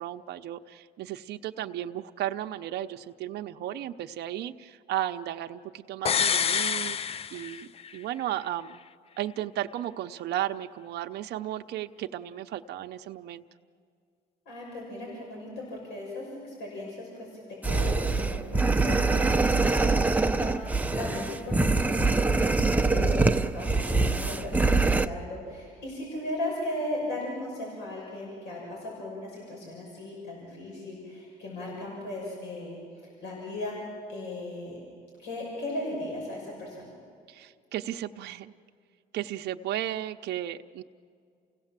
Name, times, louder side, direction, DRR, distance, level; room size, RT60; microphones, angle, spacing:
voice 1, 0.0-8.8 9.2-13.4 37.3-38.5 39.1-40.8, right 12 dB, 70° right, 6 dB, 0.7 m, -34 dB
sound 1, 6.1-8.0 8.3-8.4, left 7 dB, 35° left, 0.5 m, -27 dB
voice 2, 14.4-33.7 34.1-34.8 35.2-36.9, left 1 dB, 80° left, -3 dB, 6.5 m, -37 dB
sound 2, 17.6-25.1, right 3 dB, 10° right, 0.7 m, -24 dB
29.5 x 17.0 x 7.4 m, 2.3 s
cardioid pair, 95°, 18 cm